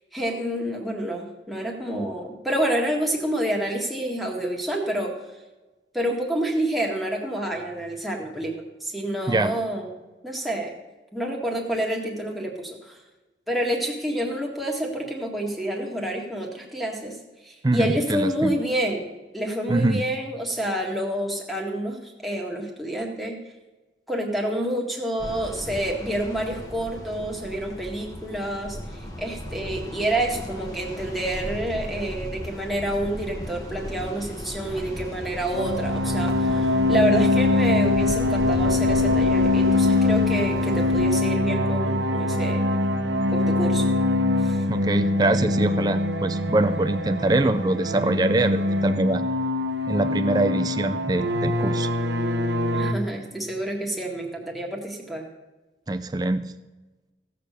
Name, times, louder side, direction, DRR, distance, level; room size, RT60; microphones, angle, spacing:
voice 1, 0.1-5.1 5.9-9.9 10.2-10.7 11.1-13.0 13.5-17.1 17.4-19.1 19.3-23.4 24.1-42.7 43.3-43.9 44.4-44.6 50.5-50.6 52.7-55.2, right 1 dB, ahead, -1 dB, 1.8 m, -28 dB
voice 2, 17.6-18.6 19.7-20.0 44.7-49.2 49.9-51.9 55.9-56.5, right 2 dB, 20° right, 9 dB, 0.4 m, -24 dB
sound 1, 25.2-41.2, equal, 20° left, 1.3 m, -36 dB
sound 2, 35.5-52.9, left 2 dB, 85° right, 1.0 m, -23 dB
16.0 x 6.7 x 6.5 m, 1.2 s
head